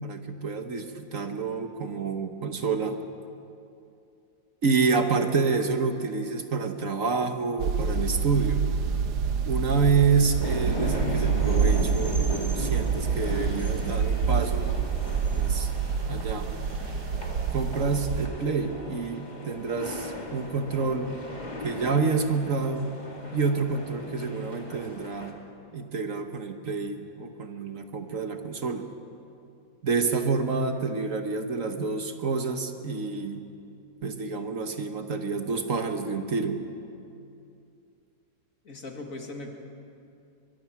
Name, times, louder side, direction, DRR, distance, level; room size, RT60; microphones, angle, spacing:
voice 1, 0.0-3.0 4.6-8.7 9.5-14.7 15.3-15.7 16.1-16.5 17.5-21.2 21.6-22.9 23.3-25.4 25.7-28.8 29.8-33.4 34.0-36.6, right 4 dB, 55° right, 6 dB, 1.5 m, -28 dB
sound 1, 7.6-18.3, right 6 dB, 85° right, 1.6 m, -27 dB
sound 2, 10.4-25.3, left 2 dB, 25° left, 2.5 m, -37 dB
voice 2, 38.6-39.5, left 2 dB, 55° left, 2 dB, 2.5 m, -39 dB
23.5 x 22.5 x 5.9 m, 2.6 s
omnidirectional pair, 1.7 m